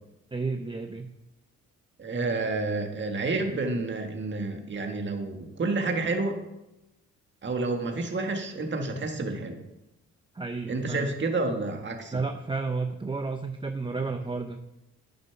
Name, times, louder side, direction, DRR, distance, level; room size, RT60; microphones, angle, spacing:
voice 1, 0.3-1.1 10.3-11.1 12.1-14.6, right 4 dB, 15° right, 5 dB, 0.7 m, -32 dB
voice 2, 2.0-6.4 7.4-9.6 10.7-12.2, right 3 dB, 40° right, 4 dB, 1.8 m, -29 dB
9.6 x 7.1 x 6.0 m, 0.93 s
cardioid pair, 90°, 30 cm